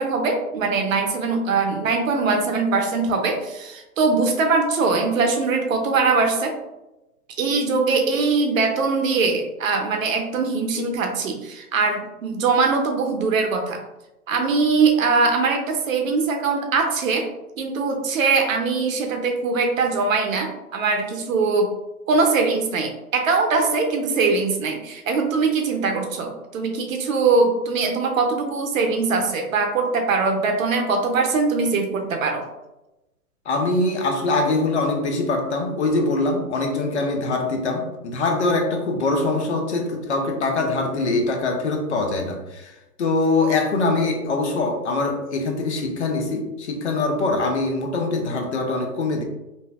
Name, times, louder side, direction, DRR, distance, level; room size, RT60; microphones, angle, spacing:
voice 1, 0.0-6.5 7.4-13.8 14.3-17.3 17.6-21.7 22.1-32.4, right 4 dB, 55° right, 3 dB, 0.7 m, -22 dB
voice 2, 33.5-49.2, left 2 dB, 50° left, 3 dB, 0.5 m, -23 dB
3.0 x 2.7 x 2.3 m, 0.97 s
hypercardioid pair, 145°, 47 cm